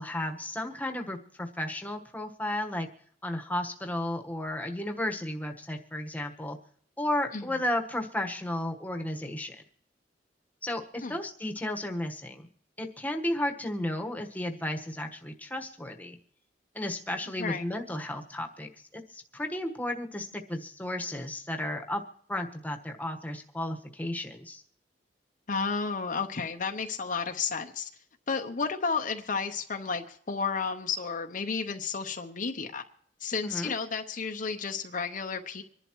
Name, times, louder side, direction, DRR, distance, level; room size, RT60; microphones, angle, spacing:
voice 1, 0.0-2.9 3.2-6.6 7.0-9.6 10.6-12.5 12.8-16.2 16.7-22.0 22.3-24.6 33.4-33.7, left 1 dB, 10° left, 3 dB, 1.3 m, -33 dB
voice 2, 25.5-27.9 28.3-32.8 33.2-35.6, left 5 dB, 45° left, 5 dB, 0.8 m, -32 dB
25.5 x 11.0 x 3.1 m, 0.63 s
head